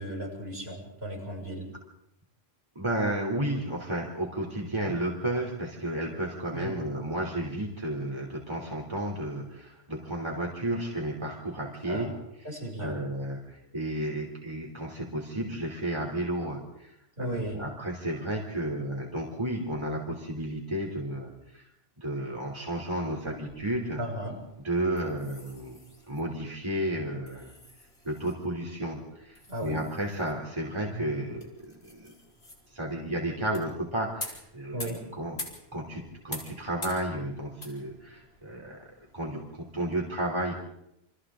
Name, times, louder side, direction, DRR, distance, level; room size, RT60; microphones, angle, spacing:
voice 1, 0.0-1.7 6.5-6.8 11.8-12.1 12.4-13.0 17.2-17.6 24.0-24.4 29.5-29.8 30.9-31.3 34.7-35.1, right 1 dB, 75° right, -2 dB, 6.9 m, -35 dB
voice 2, 2.7-12.1 12.8-16.9 17.2-21.7 22.0-24.0 24.6-25.8 26.1-27.5 28.0-32.1 32.7-35.4 35.7-38.8 39.1-40.5, right 1 dB, 25° right, -2 dB, 3.3 m, -32 dB
sound 1, 23.1-40.0, left 1 dB, 85° left, 4.7 m, -47 dB
29.5 x 26.0 x 3.8 m, 0.81 s
omnidirectional pair, 1.1 m